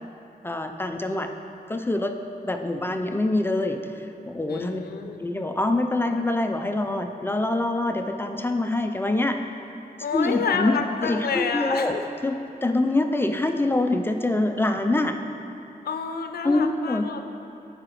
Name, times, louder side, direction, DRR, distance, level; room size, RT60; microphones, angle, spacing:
voice 1, 0.4-1.3 1.7-2.2 2.4-4.8 5.2-9.4 10.1-11.9 12.2-15.2 16.4-17.1, left 2 dB, 15° left, 5 dB, 0.4 m, -25 dB
voice 2, 4.5-5.2 10.0-12.0 15.8-17.2, left 6 dB, 80° left, 6 dB, 0.5 m, -28 dB
14.5 x 4.8 x 3.0 m, 2.8 s
wide cardioid pair, 130°, 16 cm